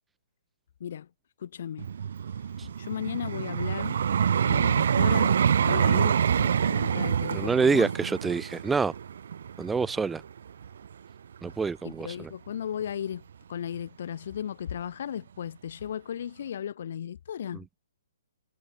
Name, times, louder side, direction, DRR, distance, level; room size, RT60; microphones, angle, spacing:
voice 1, 1.4-1.9 2.8-4.0 4.4-7.9 11.8-13.2 13.5-17.7, left 9 dB, 55° left, 2.2 m, -35 dB
Vehicle, 1.8-10.9 11.5-11.7, right 8 dB, 60° right, 2.8 m, -26 dB
voice 2, 7.3-8.9 9.6-10.2 11.4-12.3, right 5 dB, 10° right, 1.1 m, -26 dB
figure-of-eight pair, 125°, 0 cm